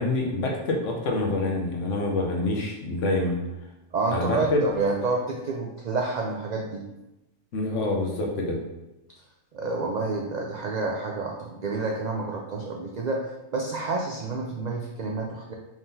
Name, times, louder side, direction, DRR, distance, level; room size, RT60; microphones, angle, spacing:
voice 1, 0.0-3.4 4.1-4.6 7.5-8.6, left 2 dB, 80° left, 1 dB, 1.1 m, -26 dB
voice 2, 3.9-6.8 9.5-13.3 13.5-15.5, right 3 dB, 80° right, 0 dB, 0.4 m, -29 dB
4.9 x 3.6 x 2.7 m, 0.98 s
omnidirectional pair, 1.3 m